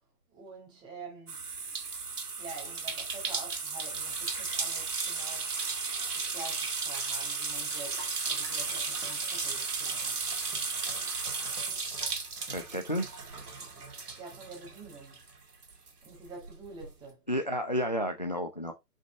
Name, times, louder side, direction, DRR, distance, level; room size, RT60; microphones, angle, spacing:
voice 1, 0.3-1.4 2.4-5.5 6.1-10.4 14.2-15.2 16.0-17.3, right 3 dB, 10° right, 1.8 m, -47 dB
sound 1, 1.3-15.3 15.6-16.9, right 4 dB, 70° right, 2.0 m, -35 dB
voice 2, 12.5-13.1 17.3-18.7, equal, 30° left, 0.4 m, -31 dB
6.4 x 5.3 x 3.2 m
figure-of-eight pair, 140°, 48 cm